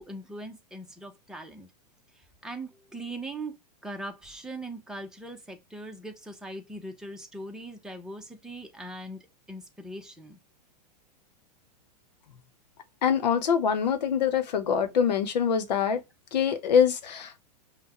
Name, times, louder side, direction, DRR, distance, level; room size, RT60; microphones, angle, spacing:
voice 1, 0.0-1.7 2.1-3.6 3.8-9.2 9.5-10.4, right 1 dB, 5° right, 0.9 m, -40 dB
voice 2, 13.0-16.0 16.3-17.4, left 7 dB, 80° left, 1.0 m, -24 dB
5.5 x 2.4 x 3.1 m
hypercardioid pair, 125°, 21 cm